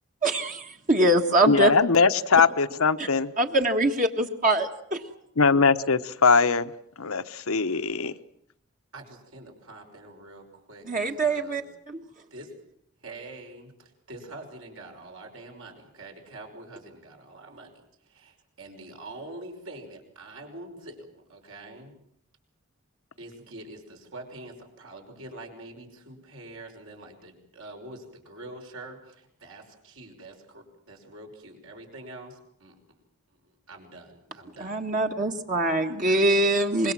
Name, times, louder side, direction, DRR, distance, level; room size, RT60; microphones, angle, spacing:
voice 1, 0.2-1.7 3.0-3.1 3.4-5.0 10.8-12.0 34.6-36.9, right 1 dB, 35° right, 3 dB, 1.6 m, -23 dB
voice 2, 1.5-3.3 5.4-6.7 7.0-8.1, left 4 dB, 75° left, 11 dB, 1.0 m, -21 dB
voice 3, 8.9-11.7 12.3-12.5 13.0-21.9 23.2-33.0 33.3-34.8 35.8-36.2, right 2 dB, 70° right, 2 dB, 5.6 m, -45 dB
25.0 x 22.0 x 7.5 m, 0.72 s
head